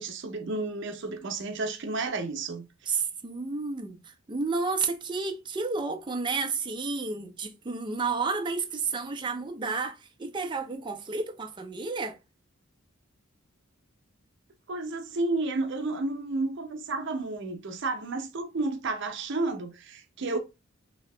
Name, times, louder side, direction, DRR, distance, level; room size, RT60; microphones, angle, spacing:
voice 1, 0.0-3.0 14.7-20.4, right 2 dB, 65° right, 0.7 m, -31 dB
voice 2, 2.9-4.0 4.3-12.2, right 4 dB, 25° right, 0.5 m, -31 dB
2.8 x 2.7 x 3.2 m
head